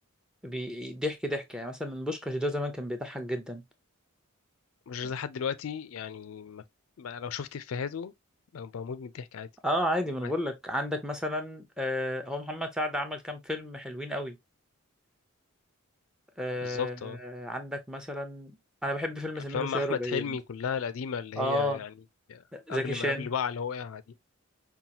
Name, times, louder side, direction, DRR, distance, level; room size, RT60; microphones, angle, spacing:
voice 1, 0.4-3.6 9.6-14.4 16.4-18.5 18.8-20.4 21.4-21.8 22.5-23.3, equal, 5° right, 0.6 m, -32 dB
voice 2, 4.9-6.6 7.0-8.1 8.5-9.5 10.2-10.3 16.6-17.2 19.5-21.9 22.3-22.4 22.7-24.0, left 7 dB, 70° left, 0.4 m, -34 dB
5.4 x 2.3 x 2.8 m
head